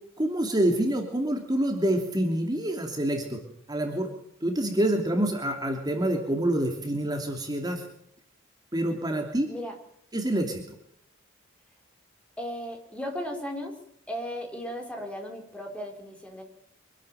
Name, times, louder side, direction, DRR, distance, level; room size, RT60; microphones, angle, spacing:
voice 1, 0.2-3.4 3.7-4.1 4.4-7.8 8.7-9.5 10.1-10.6, right 1 dB, 20° right, 3 dB, 2.9 m, -27 dB
voice 2, 12.4-13.7 14.1-16.4, equal, 5° left, 2 dB, 4.7 m, -36 dB
25.5 x 12.5 x 9.3 m, 0.72 s
head